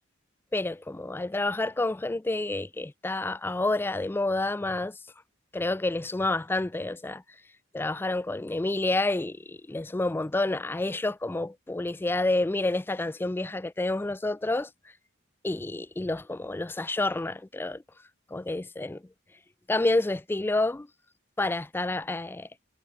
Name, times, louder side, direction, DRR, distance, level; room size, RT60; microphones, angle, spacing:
voice 1, 0.5-5.0 5.5-7.2 7.7-14.7 15.4-17.8 18.3-19.0 19.7-20.9 21.4-22.5, left 2 dB, 10° left, 0.3 m, -29 dB
head